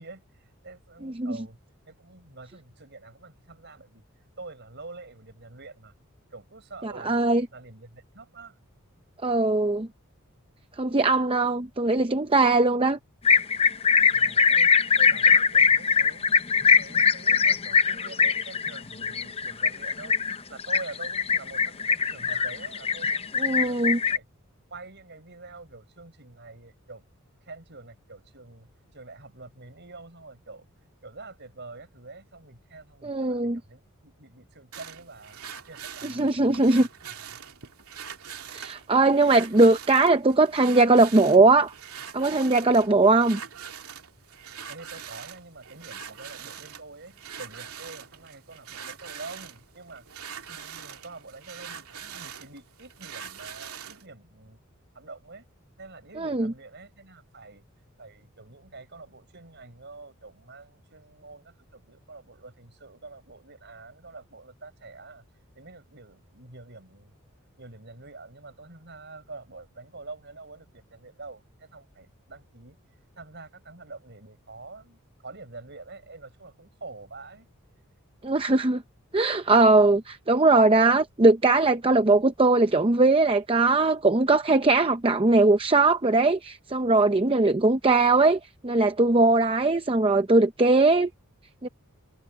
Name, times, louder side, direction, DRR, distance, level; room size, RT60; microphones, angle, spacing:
voice 1, 0.0-1.6 1.9-4.1 4.4-5.9 6.3-7.2 7.5-8.6 14.1-20.1 20.5-24.3 24.7-27.0 27.4-30.7 31.0-35.4 35.7-37.4 44.7-54.6 54.9-55.5 55.8-57.6 58.0-65.2 65.5-67.1 67.6-72.8 73.2-77.5, right 3 dB, 50° right, 6.5 m, -46 dB
voice 2, 6.8-7.5 9.2-9.9 10.8-13.0 23.4-24.0 33.0-33.6 36.0-36.9 38.5-41.7 42.1-43.4 56.2-56.5 78.2-78.8 79.1-91.1 91.6-91.7, right 3 dB, 25° right, 0.7 m, -20 dB
sound 1, 13.2-24.2, left 6 dB, 25° left, 0.6 m, -22 dB
sound 2, 34.7-54.1, right 8 dB, 85° right, 2.5 m, -43 dB
head